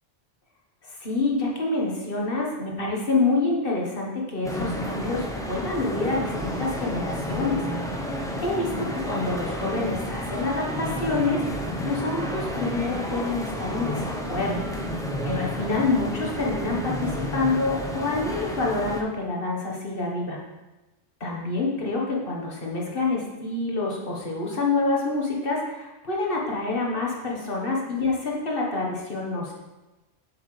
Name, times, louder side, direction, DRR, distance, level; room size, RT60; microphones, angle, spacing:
voice 1, 0.8-14.6 15.2-20.4 21.2-29.5, left 3 dB, 50° left, -2 dB, 1.5 m, -27 dB
sound 1, 4.4-19.0, equal, 5° left, 0.6 m, -31 dB
7.2 x 7.0 x 3.2 m, 1.1 s
omnidirectional pair, 1.2 m